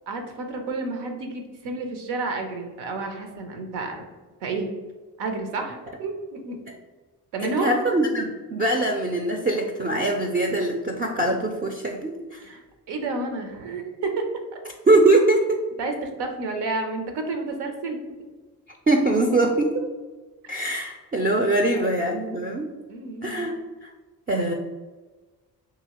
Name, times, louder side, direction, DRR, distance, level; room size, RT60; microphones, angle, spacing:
voice 1, 0.1-4.0 4.4-4.7 5.2-6.6 7.3-7.8 12.4-12.6 12.9-14.3 15.8-18.0 21.7-22.0 22.9-23.5, right 3 dB, 85° right, 4 dB, 0.6 m, -30 dB
voice 2, 7.4-12.5 14.9-15.6 18.9-19.9 20.5-22.7 23.2-23.5 23.8-23.9 24.3-24.5, right 2 dB, 25° right, 1 dB, 0.4 m, -22 dB
2.7 x 2.7 x 2.9 m, 1.3 s
supercardioid pair, 50°, 40 cm